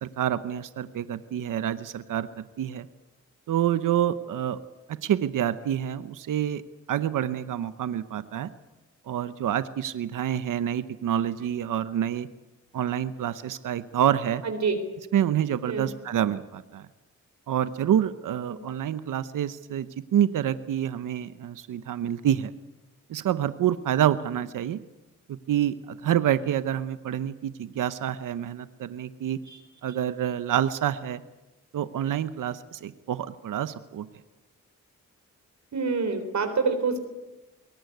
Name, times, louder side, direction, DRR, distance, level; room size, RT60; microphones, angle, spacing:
voice 1, 0.0-2.9 3.5-4.6 4.9-6.6 6.9-8.5 9.1-12.3 12.7-14.4 15.1-16.9 17.5-22.5 23.1-24.8 25.3-29.4 29.8-31.2 31.7-34.1, right 10 dB, 85° right, 13 dB, 0.9 m, -27 dB
voice 2, 14.4-14.8 15.6-15.9 18.5-18.6 29.5-29.6 35.7-37.0, right 4 dB, 60° right, 7 dB, 3.9 m, -26 dB
22.5 x 18.5 x 9.3 m, 1.0 s
cardioid pair, 55°, 31 cm